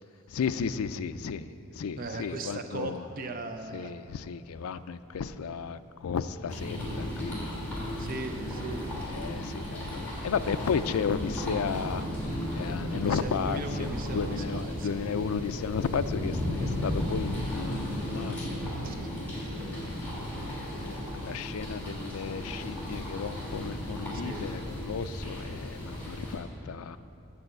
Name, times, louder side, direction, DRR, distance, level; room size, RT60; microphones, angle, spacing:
voice 1, 0.3-3.1 3.7-8.1 9.1-12.0 12.5-18.8 19.6-20.1 20.5-27.0, left 6 dB, 80° left, 11 dB, 0.4 m, -34 dB
voice 2, 2.0-3.9 8.0-8.9 12.9-15.0 18.8-19.0 24.1-24.5, right 2 dB, 40° right, 7 dB, 0.5 m, -38 dB
sound 1, 6.5-26.4, left 1 dB, 10° left, 2.9 m, -35 dB
8.6 x 6.9 x 7.8 m, 2.7 s
head